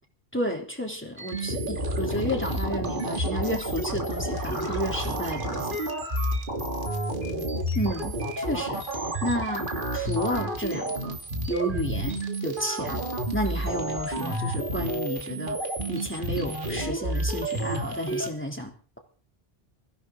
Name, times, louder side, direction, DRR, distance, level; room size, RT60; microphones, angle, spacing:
voice 1, 0.3-5.8 7.7-9.7 9.9-11.2 11.5-13.0 13.3-19.0, equal, 10° left, 1 dB, 3.4 m, -32 dB
sound 1, 1.2-18.3, right 1 dB, 55° right, 3.1 m, -30 dB
23.5 x 15.5 x 3.9 m, 0.40 s
omnidirectional pair, 1.0 m